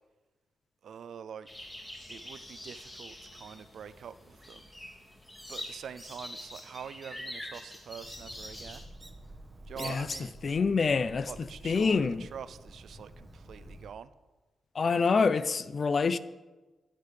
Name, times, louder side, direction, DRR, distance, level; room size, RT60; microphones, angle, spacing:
voice 1, 0.8-1.7 2.1-4.7 5.5-8.8 9.7-10.3 11.2-14.1, right 7 dB, 75° right, 0.4 m, -45 dB
sound 1, 1.5-8.8, left 1 dB, 15° left, 1.9 m, -45 dB
Bird, 8.0-14.0, right 1 dB, 25° right, 0.9 m, -48 dB
voice 2, 9.8-10.1 10.4-12.3 14.7-16.2, left 5 dB, 45° left, 0.4 m, -27 dB
20.0 x 6.7 x 3.3 m
cardioid pair, 110°, 0 cm